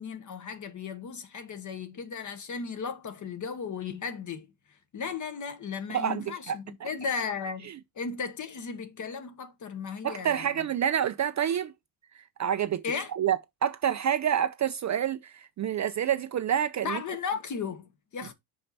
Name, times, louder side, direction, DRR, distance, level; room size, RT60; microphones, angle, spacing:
voice 1, 0.0-4.5 4.9-7.7 8.0-10.7 12.8-13.1 16.8-18.3, left 5 dB, 35° left, 1.0 m, -35 dB
voice 2, 5.9-6.6 10.0-11.7 12.4-12.8 13.1-17.0, right 9 dB, 35° right, 0.4 m, -28 dB
5.7 x 5.4 x 4.0 m
cardioid pair, 140°, 50 cm